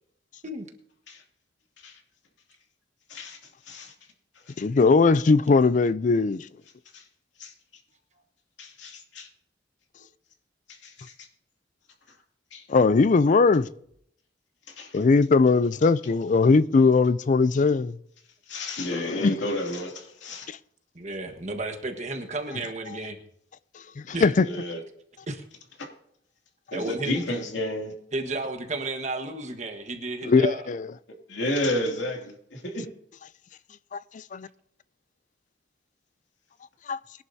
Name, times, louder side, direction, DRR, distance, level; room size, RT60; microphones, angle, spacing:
voice 1, 4.6-6.5 12.7-13.7 14.9-18.0 18.9-19.4 20.5-20.6 24.0-24.5 30.2-30.9 33.9-34.5 36.9-37.0, left 4 dB, 45° left, 0.4 m, -20 dB
voice 2, 8.6-9.3 10.7-11.1 12.5-12.6 14.7-15.0 18.5-20.5 24.3-24.8 25.8-25.9 26.7-27.9 31.3-32.9, left 1 dB, 80° left, 2.6 m, -31 dB
voice 3, 20.9-23.2 24.1-24.3 25.3-25.4 26.7-27.2 28.1-30.6, right 2 dB, 40° right, 1.4 m, -32 dB
22.0 x 11.0 x 2.8 m
head